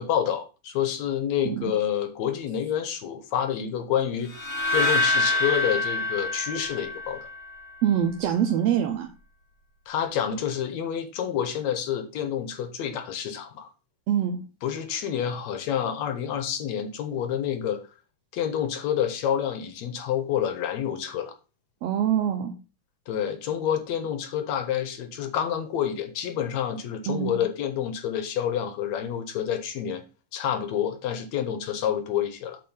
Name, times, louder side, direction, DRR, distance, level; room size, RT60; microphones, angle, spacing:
voice 1, 0.0-4.3 4.7-7.2 9.9-13.7 14.6-17.8 18.3-21.3 23.1-30.0 30.3-32.6, left 9 dB, 70° left, 2.0 m, -28 dB
sound 1, 4.3-7.5, left 2 dB, 30° left, 2.0 m, -26 dB
voice 2, 7.8-9.1 14.1-14.4 21.8-22.5 27.1-27.4, right 9 dB, 70° right, 1.6 m, -24 dB
7.7 x 4.2 x 5.5 m
omnidirectional pair, 3.5 m